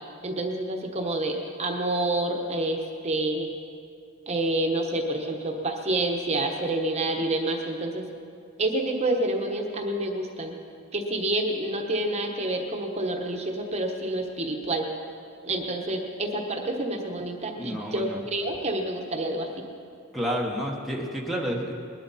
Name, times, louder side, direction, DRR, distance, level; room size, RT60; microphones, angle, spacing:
voice 1, 0.2-3.5 4.3-8.1 8.6-10.6 10.9-14.9 15.4-19.5, right 1 dB, 30° right, 2 dB, 1.1 m, -28 dB
voice 2, 17.6-18.2 20.1-21.7, equal, ahead, -3 dB, 1.1 m, -30 dB
20.0 x 12.0 x 4.2 m, 2.4 s
head